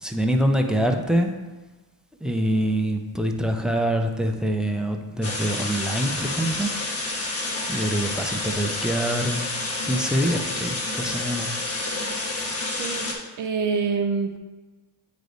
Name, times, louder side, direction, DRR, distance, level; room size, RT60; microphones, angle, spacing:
voice 1, 0.0-1.3 2.2-6.7 7.7-9.5 9.8-11.6, right 1 dB, ahead, 4 dB, 0.4 m, -25 dB
sound 1, 5.2-13.1, left 2 dB, 35° left, 1.3 m, -29 dB
voice 2, 13.4-14.4, right 5 dB, 45° right, 4 dB, 0.6 m, -25 dB
9.2 x 3.3 x 3.9 m, 1.2 s
cardioid pair, 125°, 43 cm